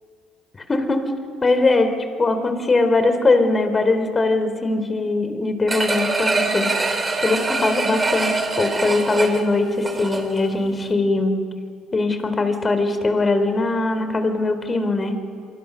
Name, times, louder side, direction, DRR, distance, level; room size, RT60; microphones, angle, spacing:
voice 1, 0.7-6.7 7.2-11.4 11.9-15.2, left 3 dB, 30° left, 9 dB, 3.6 m, -21 dB
sound 1, 5.7-10.5 10.9-11.0, right 3 dB, 25° right, 4.2 m, -24 dB
26.0 x 24.5 x 6.4 m, 2.3 s
hypercardioid pair, 60°, 0 cm